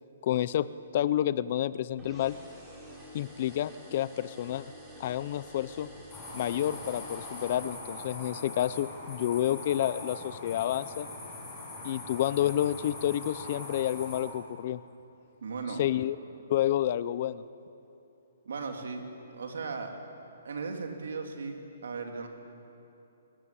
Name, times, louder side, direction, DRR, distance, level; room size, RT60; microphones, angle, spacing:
voice 1, 0.2-0.7 0.9-2.3 3.1-4.6 5.0-5.9 6.3-11.1 11.8-14.8 15.8-16.2 16.5-17.4, left 12 dB, 35° left, 17 dB, 0.6 m, -29 dB
sound 1, 2.0-8.2, equal, 10° right, 3.5 m, -49 dB
sound 2, 6.1-14.2, left 2 dB, 10° left, 6.2 m, -42 dB
voice 2, 15.4-15.8 18.4-19.0 19.3-19.9 20.4-22.3, right 4 dB, 70° right, 3 dB, 3.1 m, -37 dB
22.0 x 18.5 x 8.7 m, 2.9 s
hypercardioid pair, 175°, 0 cm